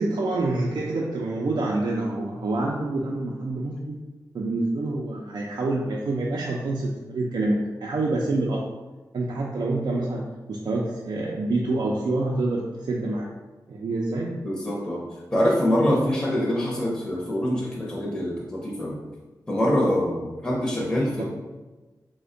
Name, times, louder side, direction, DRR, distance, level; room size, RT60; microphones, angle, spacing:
voice 1, 0.0-4.0 4.3-8.6 9.1-10.2 10.5-13.3 13.7-14.4 21.2-21.3, right 2 dB, 70° right, -3 dB, 0.4 m, -27 dB
voice 2, 14.4-15.0 15.3-19.0 19.5-21.2, equal, 10° left, -5 dB, 0.6 m, -24 dB
3.3 x 2.1 x 3.7 m, 1.2 s
wide cardioid pair, 115°, 7 cm